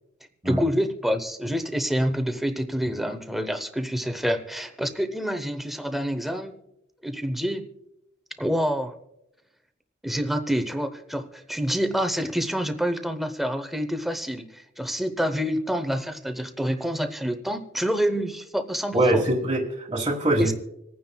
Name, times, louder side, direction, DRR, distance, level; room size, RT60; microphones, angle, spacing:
voice 1, 0.4-6.6 7.0-7.7 8.4-8.9 10.0-19.2 20.4-20.5, equal, ahead, 8 dB, 0.7 m, -27 dB
voice 2, 18.9-20.5, right 1 dB, 25° right, -3 dB, 1.5 m, -23 dB
27.0 x 9.3 x 2.3 m, 0.84 s
head